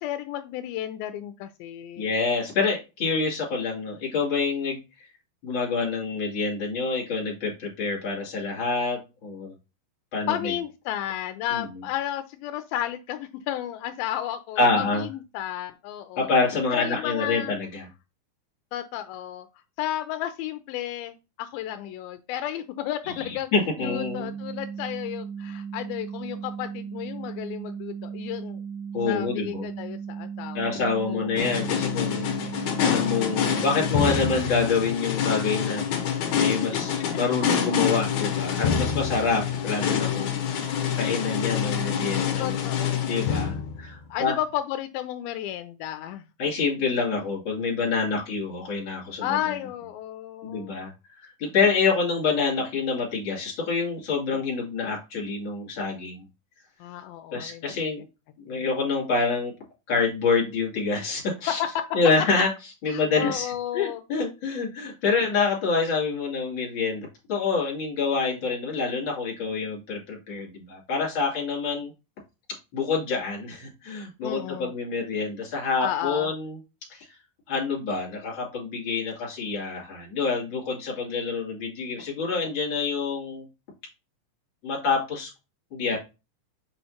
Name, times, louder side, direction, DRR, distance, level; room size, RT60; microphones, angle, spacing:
voice 1, 0.0-2.1 10.3-16.3 16.7-17.5 18.7-19.5 19.8-23.5 23.8-28.6 29.1-30.8 31.0-32.2 36.7-36.8 42.4-43.4 44.1-46.2 49.2-50.7 56.8-57.7 58.0-58.1 58.5-58.6 61.5-61.8 62.9-64.0 74.2-74.7 75.8-76.3, left 12 dB, 85° left, 10 dB, 2.4 m, -33 dB
voice 2, 2.0-4.8 5.4-9.5 10.1-10.5 11.5-11.6 14.6-15.1 16.2-17.9 23.2-24.3 28.9-29.6 30.5-32.3 32.8-35.8 36.3-40.7 41.0-42.6 43.1-44.3 46.4-49.4 50.4-50.9 51.2-56.2 57.3-58.0 58.4-59.5 59.9-61.6 61.9-62.5 62.8-71.9 72.7-76.6 76.9-77.1 77.5-83.5 84.6-85.3 85.7-86.0, left 4 dB, 35° left, -2 dB, 3.1 m, -27 dB
sound 1, 23.8-34.4, right 6 dB, 80° right, 2.2 m, -36 dB
sound 2, 31.4-44.1, left 8 dB, 65° left, 2.1 m, -26 dB
6.9 x 5.5 x 2.8 m, 0.28 s
omnidirectional pair, 4.2 m